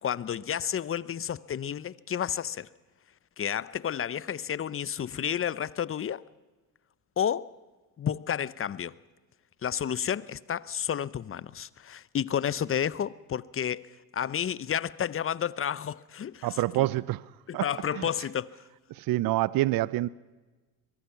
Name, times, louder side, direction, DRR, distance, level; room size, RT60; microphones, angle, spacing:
voice 1, 0.0-2.7 3.4-6.2 7.2-7.5 8.0-9.0 9.6-16.9 17.5-18.6, left 9 dB, 30° left, 0.8 m, -31 dB
voice 2, 16.4-17.2 17.5-17.6 18.0-18.1 18.9-20.1, right 17 dB, 50° right, 0.7 m, -26 dB
23.0 x 22.5 x 5.8 m
supercardioid pair, 80°, 44 cm